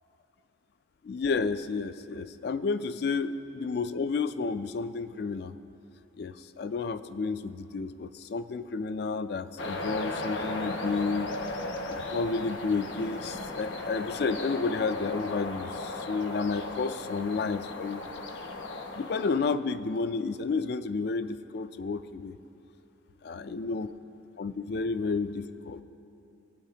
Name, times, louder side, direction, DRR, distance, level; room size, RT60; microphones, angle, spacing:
voice 1, 1.0-5.5 6.2-11.4 11.9-18.0 18.9-22.4 23.2-23.9 24.4-25.8, left 4 dB, 55° left, 13 dB, 0.3 m, -31 dB
sound 1, 9.6-19.4, left 2 dB, 70° left, 0.8 m, -36 dB
18.0 x 8.8 x 2.8 m, 2.8 s
head